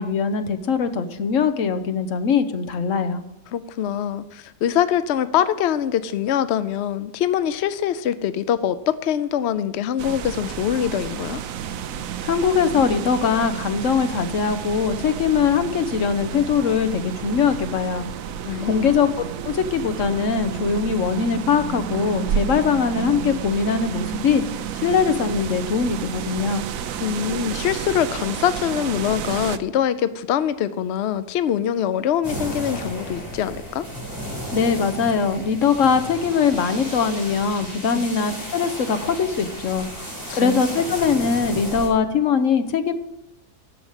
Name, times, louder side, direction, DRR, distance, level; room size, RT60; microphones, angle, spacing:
voice 1, 0.0-3.2 12.2-18.1 18.6-24.4 24.8-26.6 34.5-39.9 40.3-42.9, left 6 dB, 55° left, 9 dB, 1.1 m, -21 dB
voice 2, 3.5-11.4 18.4-18.9 27.0-33.9 37.9-38.1 40.3-40.6, left 10 dB, 75° left, 13 dB, 0.6 m, -24 dB
sound 1, 10.0-29.6, right 9 dB, 65° right, 1.0 m, -31 dB
sound 2, 32.2-41.9, equal, 10° right, 4.5 m, -33 dB
10.5 x 7.0 x 8.1 m, 0.88 s
omnidirectional pair, 1.7 m